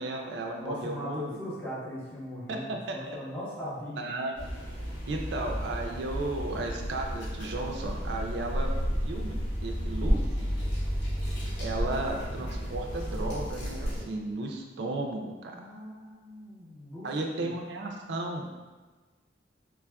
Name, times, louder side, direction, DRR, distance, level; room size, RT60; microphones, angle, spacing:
voice 1, 0.0-1.4 2.5-3.2 4.0-4.3 5.0-10.3 11.6-15.5 17.0-18.5, right 2 dB, 70° right, 2 dB, 0.4 m, -34 dB
voice 2, 0.5-4.0 15.5-17.1 17.4-17.5, left 1 dB, 10° left, -11 dB, 0.9 m, -39 dB
sound 1, 4.3-14.0, equal, 90° left, 1.3 m, -32 dB
3.3 x 2.4 x 2.2 m, 1.3 s
head